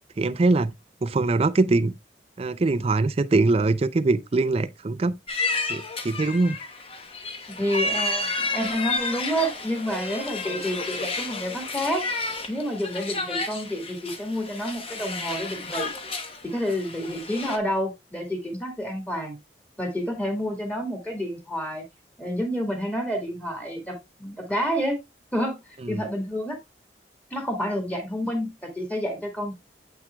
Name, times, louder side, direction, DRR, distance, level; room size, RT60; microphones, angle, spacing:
voice 1, 0.2-0.7 1.0-1.9 2.4-5.1 5.7-6.6 25.8-26.1, right 3 dB, 35° right, 0.4 m, -22 dB
sound 1, 5.3-17.6, left 3 dB, 30° left, 1.0 m, -31 dB
voice 2, 7.6-12.0 12.5-15.9 16.4-19.4 19.8-21.8 22.2-25.0 25.3-25.6 25.9-26.6 27.3-29.5, equal, 10° left, 1.9 m, -29 dB
8.0 x 5.9 x 2.3 m
head